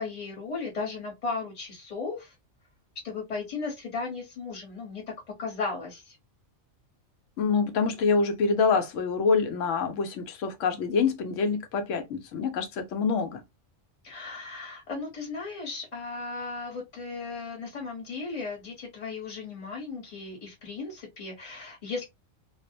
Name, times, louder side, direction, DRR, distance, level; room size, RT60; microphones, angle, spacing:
voice 1, 0.0-2.3 3.0-5.0 5.4-6.1 14.0-22.0, left 4 dB, 35° left, 1.0 m, -36 dB
voice 2, 7.4-13.4, left 5 dB, 75° left, 1.0 m, -26 dB
2.4 x 2.0 x 2.6 m
omnidirectional pair, 1.3 m